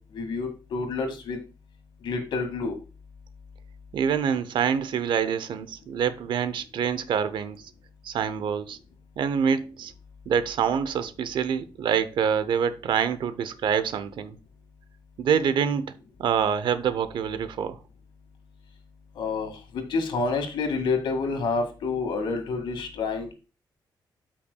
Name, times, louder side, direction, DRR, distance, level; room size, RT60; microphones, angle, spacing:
voice 1, 0.1-1.4 2.0-2.7 19.2-23.3, left 4 dB, 85° left, 2.0 m, -28 dB
voice 2, 3.9-7.7 8.0-8.8 9.2-9.9 10.3-14.4 15.2-15.9 16.2-17.8, right 7 dB, 75° right, 0.7 m, -26 dB
13.0 x 5.8 x 2.3 m
cardioid pair, 120°, 8 cm